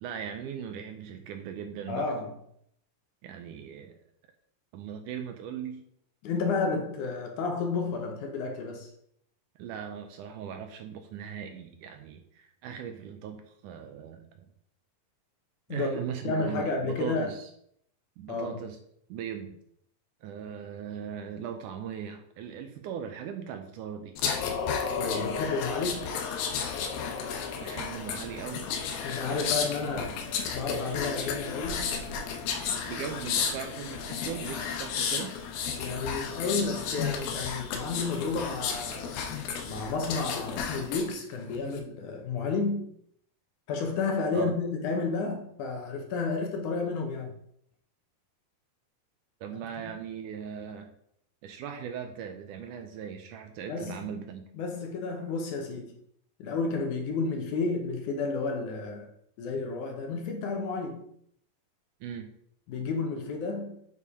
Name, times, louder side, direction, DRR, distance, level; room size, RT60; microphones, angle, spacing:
voice 1, 0.0-2.1 3.2-4.0 4.7-5.8 9.6-14.5 15.7-17.5 18.2-18.8 19.1-19.6 20.2-24.2 27.6-28.7 29.3-30.0 32.9-35.3 44.3-44.6 49.4-50.9 51.4-54.5 62.0-62.3, right 8 dB, 75° right, 2.0 m, -39 dB
voice 2, 1.9-2.4 6.2-8.9 15.7-17.3 18.3-18.6 25.0-26.1 29.0-30.2 30.5-32.0 35.8-39.2 39.6-42.9 43.7-47.3 49.8-50.0 53.7-54.1 54.5-56.0 56.4-59.1 59.4-61.1 62.7-63.8, left 4 dB, 70° left, 2.1 m, -31 dB
sound 1, 24.2-41.1 41.5-41.8, left 6 dB, 90° left, 2.8 m, -33 dB
7.0 x 4.8 x 4.9 m
omnidirectional pair, 4.0 m